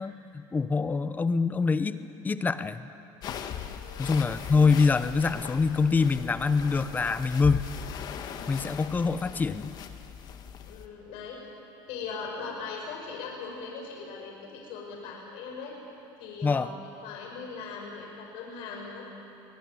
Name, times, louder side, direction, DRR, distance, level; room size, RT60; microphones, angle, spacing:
voice 1, 0.0-2.9 4.0-7.7 8.5-9.7 16.4-16.7, left 4 dB, 20° left, 13 dB, 0.8 m, -25 dB
sound 1, 3.2-10.9, left 8 dB, 45° left, 1.5 m, -39 dB
voice 2, 3.8-4.2 10.7-11.4 11.9-15.7 16.2-16.7 17.0-19.1, left 5 dB, 70° left, -1 dB, 5.8 m, -39 dB
23.5 x 19.0 x 9.5 m, 2.8 s
cardioid pair, 130°, 10 cm